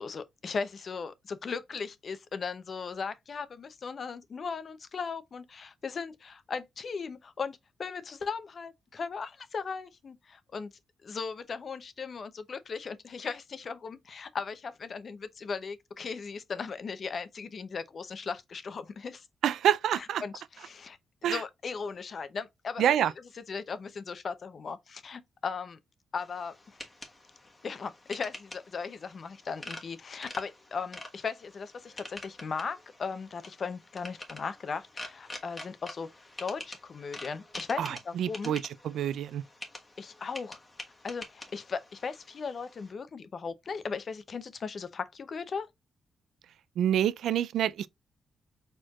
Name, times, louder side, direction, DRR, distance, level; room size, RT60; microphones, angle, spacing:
voice 1, 0.0-10.7 11.0-19.3 20.0-22.8 23.5-25.8 26.1-26.5 27.6-36.1 36.4-38.5 40.0-40.6 41.0-45.7, left 5 dB, 50° left, 0.6 m, -37 dB
voice 2, 19.4-20.2 21.2-21.4 22.8-23.1 37.8-39.4 46.8-47.9, right 10 dB, 90° right, 0.3 m, -27 dB
sound 1, 26.2-42.9, left 2 dB, 20° left, 1.2 m, -47 dB
4.5 x 4.4 x 2.3 m
cardioid pair, 110°, 0 cm